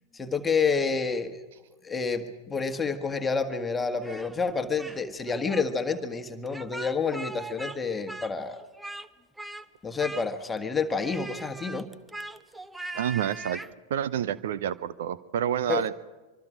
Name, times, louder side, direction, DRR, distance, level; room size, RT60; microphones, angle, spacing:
voice 1, 0.1-1.4 1.8-8.6 9.8-11.9 15.7-15.8, left 5 dB, 15° left, 6 dB, 1.6 m, -29 dB
Speech, 4.0-5.0 5.3-5.6 6.5-7.8 8.1-9.1 9.4-9.7 10.0-10.6 11.0-13.7, right 2 dB, 5° right, 0.8 m, -40 dB
voice 2, 12.9-13.6 13.9-15.9, right 10 dB, 60° right, 17 dB, 0.7 m, -28 dB
24.5 x 24.5 x 5.0 m, 1.2 s
figure-of-eight pair, 90°, 0 cm